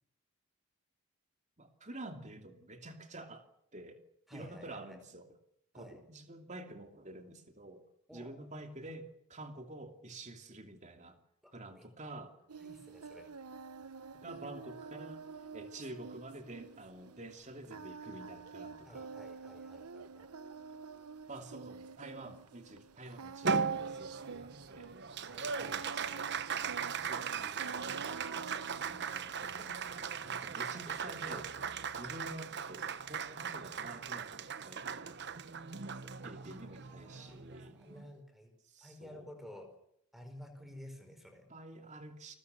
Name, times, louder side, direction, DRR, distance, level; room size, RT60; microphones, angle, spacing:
voice 1, 1.6-3.4 3.7-4.0 4.3-5.3 5.7-7.8 8.1-11.2 11.5-12.4 14.2-15.2 15.5-19.1 21.3-24.9 25.5-31.5 32.0-35.4 36.2-37.8 38.7-39.3 41.5-42.4, right 1 dB, 30° right, 6 dB, 2.8 m, -49 dB
voice 2, 4.3-5.0 5.7-6.0 8.1-8.3 11.4-11.9 12.6-13.3 18.8-20.3 25.3-25.5 29.6-29.7 30.1-31.4 36.0-38.5 38.8-39.7 40.1-41.5, left 1 dB, ahead, 6 dB, 4.9 m, -53 dB
Singing, 12.5-29.1, right 5 dB, 90° right, 0.9 m, -49 dB
Applause, 23.4-38.1, right 6 dB, 50° right, 1.0 m, -38 dB
29.0 x 21.0 x 6.8 m, 0.71 s
head